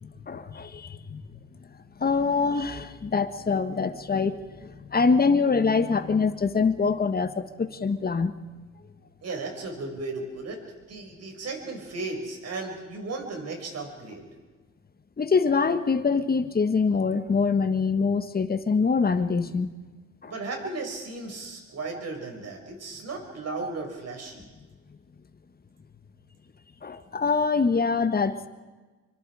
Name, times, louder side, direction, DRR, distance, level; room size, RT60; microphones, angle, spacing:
voice 1, 0.3-1.2 2.0-8.3 15.2-19.7 20.2-20.3 26.8-28.5, left 5 dB, 30° left, 10 dB, 1.6 m, -24 dB
voice 2, 9.2-10.6 10.9-14.3 20.2-24.5, right 3 dB, 55° right, 3 dB, 6.3 m, -35 dB
27.5 x 24.5 x 5.0 m, 1.3 s
cardioid pair, 90°, 30 cm